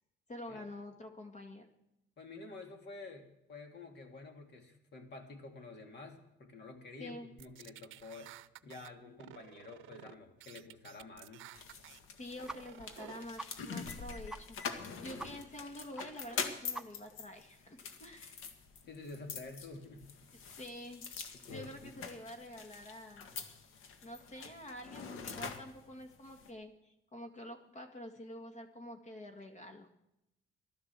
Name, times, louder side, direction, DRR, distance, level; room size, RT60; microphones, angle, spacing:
voice 1, 0.3-1.7 7.0-7.3 12.2-18.4 20.5-23.3 24.0-29.9, left 1 dB, 35° left, 5 dB, 2.0 m, -48 dB
voice 2, 2.2-11.5 18.8-20.1, left 3 dB, 60° left, 4 dB, 3.1 m, -50 dB
sound 1, 7.4-8.9 9.2-10.1 10.4-12.0 12.4-13.2, right 15 dB, 85° right, 0.6 m, -53 dB
sound 2, 11.5-26.5, left 5 dB, 90° left, 1.8 m, -45 dB
sound 3, 12.5-12.6 12.9-13.0 13.4-13.5 13.9-14.0 14.3-14.4 14.7-14.8 15.2-15.3 15.6-15.7 16.0-16.1 16.4-16.5 16.7-17.1, right 2 dB, 5° right, 0.9 m, -44 dB
15.5 x 12.5 x 7.5 m, 0.88 s
cardioid pair, 90°, 20 cm